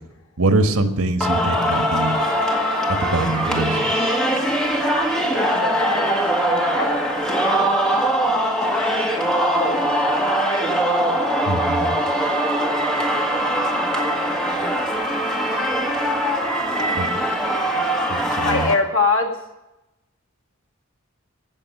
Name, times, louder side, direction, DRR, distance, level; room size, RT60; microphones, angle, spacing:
voice 1, 0.4-2.2 3.0-3.9 11.5-11.9 16.9-17.1 18.1-18.7, right 2 dB, 80° right, 7 dB, 1.4 m, -23 dB
Singing, 1.2-18.7, right 1 dB, 5° left, 1.7 m, -21 dB
voice 2, 5.4-6.2 6.5-8.3 9.6-9.8 11.7-12.3 13.8-14.7 16.8-17.3 18.4-19.3, left 4 dB, 65° left, 1 dB, 2.2 m, -26 dB
15.5 x 6.5 x 9.7 m, 0.96 s
head